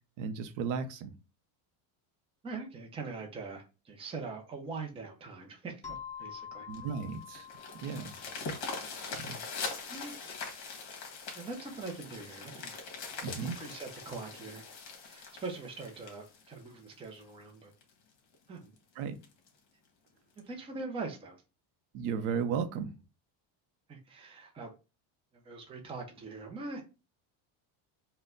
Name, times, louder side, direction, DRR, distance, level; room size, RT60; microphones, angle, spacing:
voice 1, 0.2-1.1 6.7-7.5 7.8-8.1 9.1-9.4 13.2-13.6 19.0-19.2 21.9-22.9, right 6 dB, 85° right, 0.8 m, -35 dB
voice 2, 2.4-6.7 9.9-10.2 11.3-12.7 13.6-14.7 15.0-17.7 18.5-18.7 20.5-21.4 23.9-24.7 25.3-26.8, right 3 dB, 10° right, 0.4 m, -42 dB
sound 1, 5.8-10.2, left 8 dB, 15° left, 1.0 m, -48 dB
sound 2, 6.7-17.2 17.8-17.9 18.3-18.4 18.8-18.9 19.2-19.5 20.4-20.5, left 4 dB, 50° left, 1.4 m, -42 dB
4.4 x 2.2 x 3.6 m
cardioid pair, 155°, 49 cm